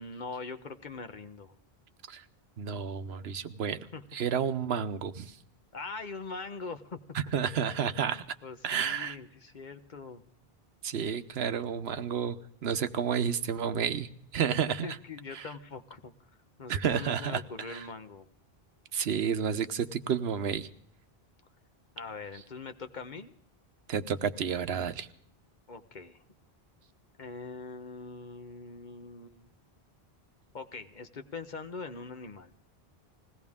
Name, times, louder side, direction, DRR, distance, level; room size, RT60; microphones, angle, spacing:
voice 1, 0.0-1.5 3.9-4.0 5.7-7.0 8.4-10.2 14.7-16.1 16.6-18.3 21.9-23.3 25.7-26.2 27.2-29.5 30.5-32.5, left 4 dB, 50° left, 8 dB, 1.1 m, -42 dB
voice 2, 2.6-3.8 4.1-5.4 7.3-8.4 8.6-9.2 10.8-12.4 12.6-15.0 15.3-15.5 16.7-17.4 17.7-17.9 18.9-20.7 23.9-25.1, right 7 dB, 85° right, 11 dB, 1.0 m, -31 dB
21.0 x 17.0 x 3.6 m, 0.69 s
omnidirectional pair, 1.0 m